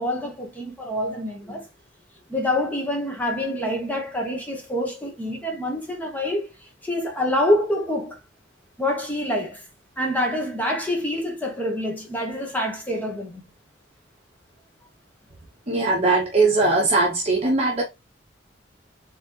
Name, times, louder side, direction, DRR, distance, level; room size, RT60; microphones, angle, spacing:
voice 1, 0.0-1.6 2.3-6.5 6.8-8.2 8.8-9.6 10.0-13.4, left 1 dB, 10° left, 1.0 m, -26 dB
voice 2, 15.7-17.8, right 3 dB, 35° right, 1.0 m, -20 dB
4.1 x 3.8 x 2.9 m
head